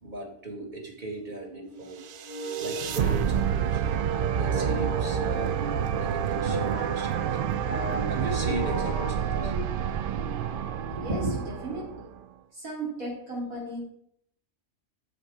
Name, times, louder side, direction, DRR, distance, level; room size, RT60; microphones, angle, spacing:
voice 1, 0.0-2.0 2.6-3.8 4.3-5.6 6.0-7.5 8.1-9.5 10.9-11.3, right 1 dB, 35° right, 0 dB, 2.0 m, -36 dB
sound 1, 1.1-9.1, equal, 10° right, 1.9 m, -38 dB
sound 2, 2.0-12.2, right 8 dB, 70° right, 0.5 m, -28 dB
voice 2, 12.6-13.8, right 1 dB, 85° right, -3 dB, 3.9 m, -35 dB
9.0 x 7.3 x 4.7 m, 0.69 s
omnidirectional pair, 1.4 m